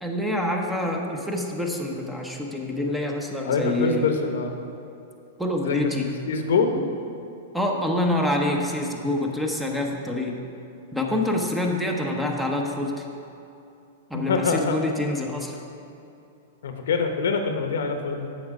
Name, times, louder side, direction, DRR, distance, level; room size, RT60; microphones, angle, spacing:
voice 1, 0.0-4.1 5.4-6.1 6.7-6.8 7.5-10.4 10.9-13.0 14.1-15.6, left 1 dB, 5° right, 1 dB, 0.9 m, -26 dB
voice 2, 3.4-4.5 5.6-6.0 6.2-6.7 14.1-14.8 16.6-18.3, left 5 dB, 80° left, 5 dB, 0.9 m, -25 dB
8.4 x 6.4 x 4.9 m, 2.7 s
hypercardioid pair, 130°, 0 cm